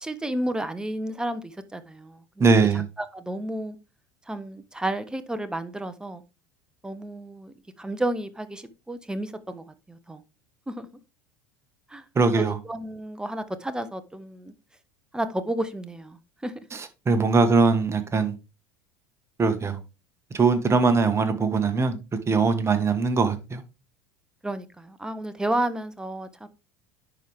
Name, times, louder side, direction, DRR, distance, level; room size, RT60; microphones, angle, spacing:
voice 1, 0.0-2.2 2.7-3.8 4.3-6.2 6.8-10.2 10.7-10.9 11.9-12.0 12.4-14.5 15.1-16.5 24.4-26.5, right 1 dB, 5° right, 0.9 m, -32 dB
voice 2, 2.4-2.9 12.1-12.6 16.7-18.4 19.4-19.8 20.3-22.0 22.3-23.6, right 4 dB, 20° right, 1.5 m, -21 dB
10.5 x 4.7 x 3.5 m
figure-of-eight pair, 75°, 12 cm